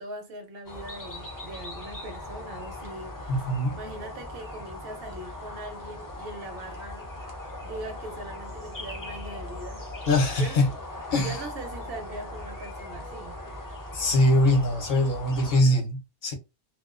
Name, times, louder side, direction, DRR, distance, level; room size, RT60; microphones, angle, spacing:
voice 1, 0.0-3.4 3.7-7.1 7.6-9.9 10.4-10.8 11.1-13.4, right 1 dB, 65° right, 0.8 m, -41 dB
sound 1, 0.7-15.6, left 1 dB, 25° left, 0.5 m, -39 dB
voice 2, 3.3-3.8 10.1-10.7 11.1-11.4 13.9-16.3, left 1 dB, 55° left, 0.8 m, -22 dB
2.3 x 2.3 x 2.4 m
omnidirectional pair, 1.1 m